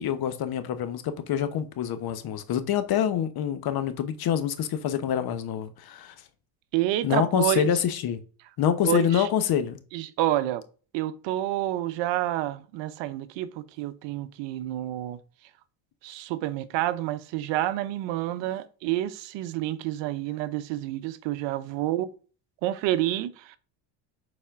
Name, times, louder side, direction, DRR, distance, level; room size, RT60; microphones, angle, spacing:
voice 1, 0.0-6.1 7.0-8.2 8.6-9.8, left 9 dB, 50° left, 1.1 m, -26 dB
voice 2, 6.7-7.7 8.8-9.3 9.9-10.6 10.9-15.2 16.0-22.1 22.6-23.6, right 14 dB, 65° right, 0.8 m, -29 dB
7.0 x 4.3 x 3.7 m
supercardioid pair, 95°, 47 cm